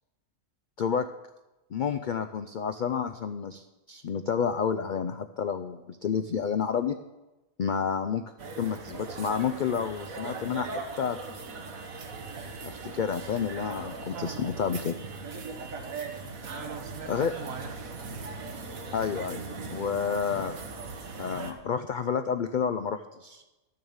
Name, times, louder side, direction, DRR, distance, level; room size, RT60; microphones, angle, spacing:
voice 1, 1.7-7.0 7.6-8.2 8.6-10.7 11.0-11.2 12.6-15.0 17.1-17.3 18.9-19.4 19.7-20.6 21.2-23.4, left 7 dB, 75° left, 9 dB, 0.4 m, -30 dB
sound 1, 8.4-21.5, right 4 dB, 85° right, 1.6 m, -39 dB
voice 2, 14.1-14.7 16.4-18.3, right 5 dB, 70° right, 5 dB, 1.6 m, -42 dB
12.5 x 6.7 x 7.2 m, 1.0 s
omnidirectional pair, 1.4 m